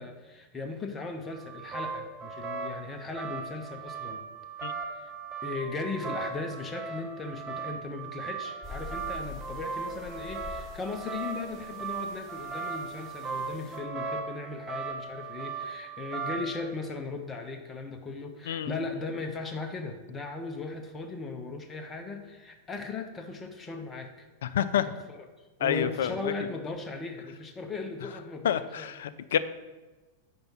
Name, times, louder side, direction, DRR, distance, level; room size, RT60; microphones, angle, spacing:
voice 1, 0.0-4.3 4.9-5.1 5.4-24.3 24.7-24.8 25.1-29.0, left 3 dB, 20° left, 5 dB, 0.7 m, -38 dB
sound 1, 1.3-16.6, right 4 dB, 20° right, 1.1 m, -38 dB
sound 2, 8.6-13.8, left 3 dB, ahead, 1.9 m, -46 dB
voice 2, 18.5-18.8 24.4-24.9 25.6-26.3 28.4-29.4, left 9 dB, 60° left, 13 dB, 0.3 m, -28 dB
5.3 x 4.4 x 5.6 m, 1.2 s
figure-of-eight pair, 90°, 0 cm